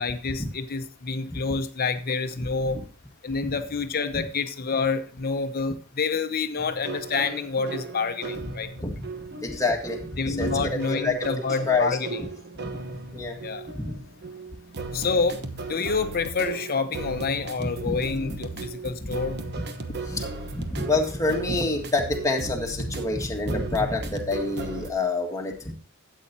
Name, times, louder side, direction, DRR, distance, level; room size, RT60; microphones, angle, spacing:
voice 1, 0.0-2.8 3.2-8.7 10.2-12.2 13.4-13.6 14.9-15.4 15.7-19.4, left 4 dB, 45° left, 8 dB, 0.8 m, -28 dB
sound 1, 6.6-24.9, right 3 dB, 50° right, 1.0 m, -37 dB
voice 2, 9.4-10.0 10.3-11.2 11.7-12.0 12.6-12.7 13.1-13.4 13.7-14.0 17.9-18.0 18.3-18.4 19.0-19.1 20.1-20.2 20.5-25.7, left 3 dB, 15° left, 1 dB, 1.7 m, -27 dB
13.0 x 8.4 x 2.8 m, 0.37 s
head